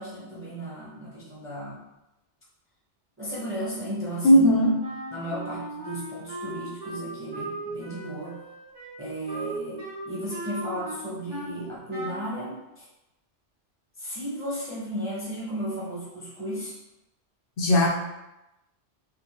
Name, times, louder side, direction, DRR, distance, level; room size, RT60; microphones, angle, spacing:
voice 1, 0.0-1.8 3.2-4.8 5.1-8.4 9.0-12.8 14.0-16.8, equal, 15° right, -8 dB, 0.7 m, -35 dB
voice 2, 4.2-4.7 17.6-17.9, equal, 60° left, -1 dB, 0.7 m, -17 dB
Wind instrument woodwind instrument, 4.8-11.6 11.9-12.3, right 2 dB, 55° right, 1.2 m, -37 dB
3.4 x 2.1 x 3.0 m, 0.94 s
omnidirectional pair, 1.2 m